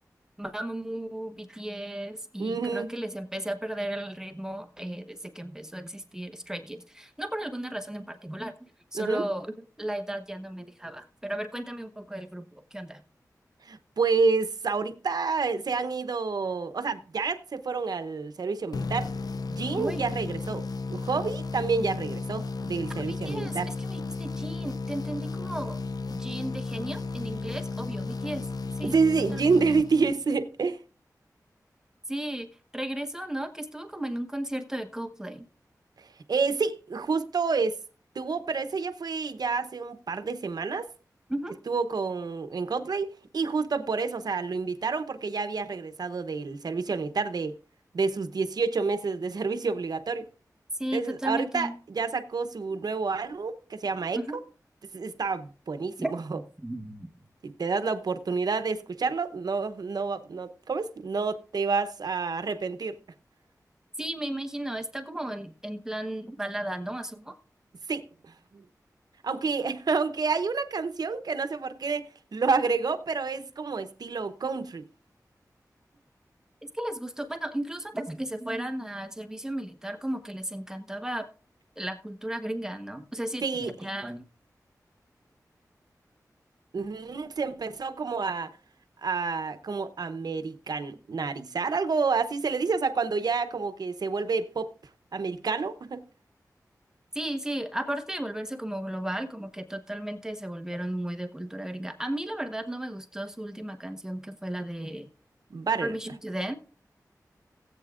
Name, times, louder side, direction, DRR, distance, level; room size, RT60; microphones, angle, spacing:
voice 1, 0.4-13.0 19.8-20.0 22.9-23.6 23.9-25.8 26.1-28.5 28.8-28.9 29.3-29.4 32.1-32.5 32.7-35.4 41.3-41.5 50.8-51.7 54.1-54.4 56.0-56.1 56.6-57.1 64.0-67.3 76.6-81.3 81.8-84.2 97.1-105.1 105.8-106.5, right 1 dB, 10° right, 1.1 m, -35 dB
voice 2, 2.4-2.9 8.9-9.2 13.6-19.1 19.5-20.6 20.9-23.7 28.8-30.8 36.0-37.8 38.1-40.9 41.7-43.1 43.3-47.6 47.9-50.3 50.9-54.2 54.9-56.4 57.4-63.0 67.9-68.1 68.5-68.6 69.2-74.9 83.4-83.7 86.7-88.5 89.0-94.7 95.1-96.1 105.5-105.9, right 4 dB, 80° right, 0.8 m, -29 dB
sound 1, 18.7-30.4, left 3 dB, 75° left, 0.5 m, -34 dB
17.5 x 8.4 x 2.5 m
wide cardioid pair, 90°, 7 cm